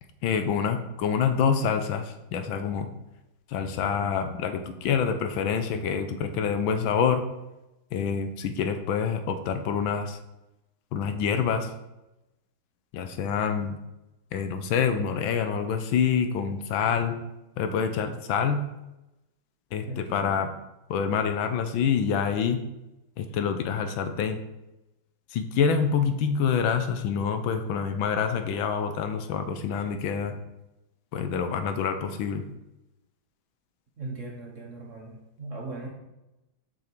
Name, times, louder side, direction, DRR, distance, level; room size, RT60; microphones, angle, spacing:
voice 1, 0.2-2.9 3.5-7.2 7.9-10.2 10.9-11.7 12.9-13.8 14.3-17.2 17.6-18.6 19.7-20.5 20.9-22.6 23.2-24.4 25.3-30.4 31.1-32.4, left 7 dB, 75° left, 8 dB, 1.4 m, -26 dB
voice 2, 19.9-20.4 34.0-35.9, right 2 dB, 45° right, -1 dB, 1.1 m, -39 dB
6.5 x 5.8 x 4.5 m, 0.96 s
omnidirectional pair, 2.3 m